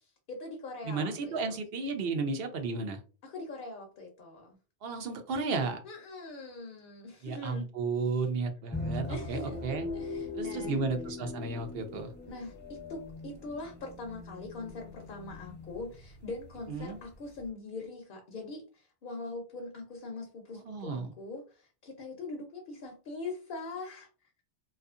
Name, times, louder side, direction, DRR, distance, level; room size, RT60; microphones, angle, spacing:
voice 1, 0.3-1.6 3.2-4.6 5.8-7.7 9.1-9.6 9.9-10.8 12.3-24.1, left 3 dB, 60° left, 2 dB, 0.7 m, -42 dB
voice 2, 0.8-3.0 4.8-5.8 7.2-9.9 10.3-12.1 16.7-17.0 20.7-21.1, right 4 dB, 65° right, 6 dB, 0.7 m, -33 dB
sound 1, 8.7-17.5, left 3 dB, 15° left, 0.4 m, -41 dB
2.6 x 2.4 x 2.4 m, 0.35 s
omnidirectional pair, 1.1 m